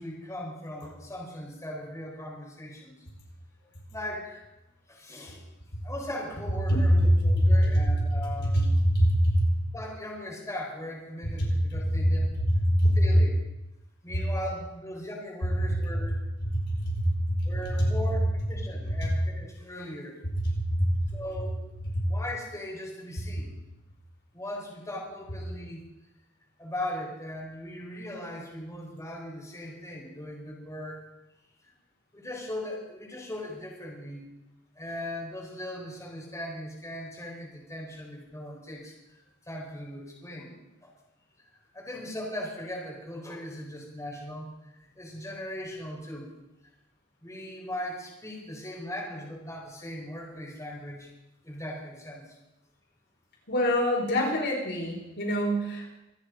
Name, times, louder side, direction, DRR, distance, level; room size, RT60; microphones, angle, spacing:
voice 1, 0.0-2.9 3.9-4.4 4.9-5.4 5.8-8.8 9.7-12.3 12.9-13.4 14.0-16.2 17.4-20.2 21.1-21.6 22.0-23.6 24.3-25.8 26.6-31.0 32.1-34.3 34.7-38.9 39.4-40.5 40.8-40.9 41.7-44.5 44.9-46.3 47.2-51.1 51.4-52.4, left 1 dB, 15° left, -3 dB, 4.4 m, -39 dB
voice 2, 6.7-7.5 7.8-7.9 8.5-9.4 12.5-13.0 16.9-17.2 20.7-20.9 21.9-22.0 53.5-56.0, equal, 55° left, -1 dB, 4.6 m, -23 dB
26.0 x 10.0 x 5.3 m, 0.95 s
head